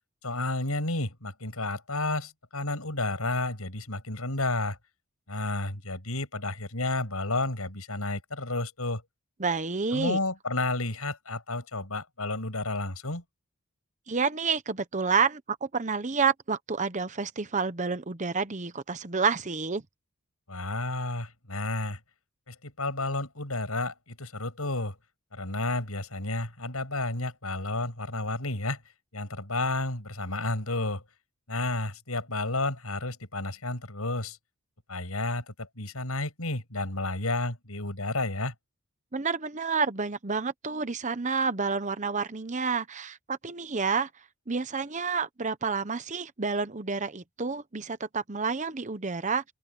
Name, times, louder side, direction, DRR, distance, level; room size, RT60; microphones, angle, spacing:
voice 1, 0.2-4.8 5.3-9.0 9.9-13.2 20.5-22.0 22.5-25.0 25.3-28.8 29.1-31.0 31.5-34.4 34.9-38.5, left 2 dB, 75° left, 7.5 m, -31 dB
voice 2, 9.4-10.2 14.1-19.8 39.1-44.1 44.5-49.4, right 5 dB, 35° right, 0.9 m, -29 dB
open air
head